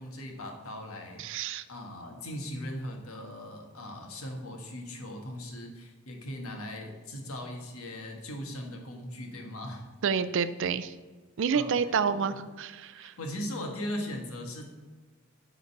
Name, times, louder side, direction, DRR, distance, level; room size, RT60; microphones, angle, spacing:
voice 1, 0.0-9.9 11.5-12.4 12.9-14.7, left 1 dB, 80° left, 2 dB, 1.5 m, -39 dB
voice 2, 1.2-1.6 10.0-10.9 11.4-13.1, right 6 dB, 60° right, 13 dB, 0.4 m, -29 dB
9.7 x 3.9 x 5.3 m, 1.4 s
head